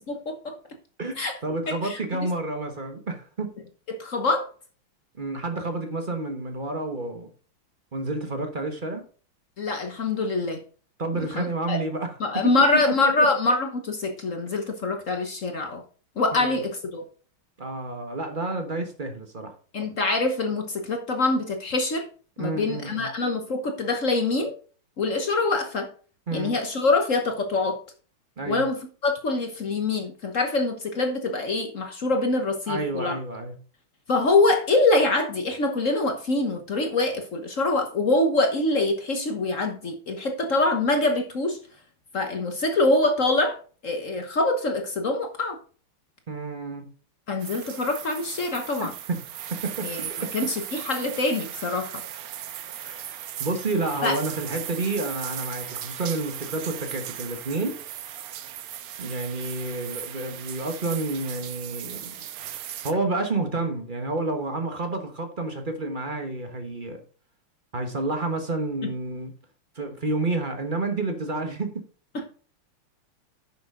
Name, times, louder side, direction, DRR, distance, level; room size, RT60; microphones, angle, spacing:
voice 1, 0.1-0.5 1.2-1.3 1.7-2.3 3.9-4.5 9.6-10.6 11.1-11.8 12.2-15.8 16.2-17.0 19.7-22.0 22.4-24.5 25.0-25.9 26.3-27.8 28.4-33.2 34.1-41.6 42.1-43.6 43.8-45.6 47.3-48.9 49.8-50.0 50.3-52.0 54.0-54.2 72.1-72.2, left 2 dB, 45° left, 1.2 m, -24 dB
voice 2, 1.0-3.5 5.2-7.3 7.9-9.0 11.0-12.6 13.0-13.3 16.3-16.6 17.6-19.5 22.4-23.1 26.3-26.5 28.4-28.6 32.7-33.6 46.3-46.9 48.8-49.2 49.5-49.8 50.2-50.3 52.8-57.8 59.0-62.1 62.8-67.0 67.7-69.3 69.7-71.8, right 2 dB, 30° right, 1.1 m, -30 dB
sound 1, 47.4-62.9, right 11 dB, 70° right, 0.8 m, -37 dB
10.0 x 6.7 x 3.7 m
omnidirectional pair, 2.4 m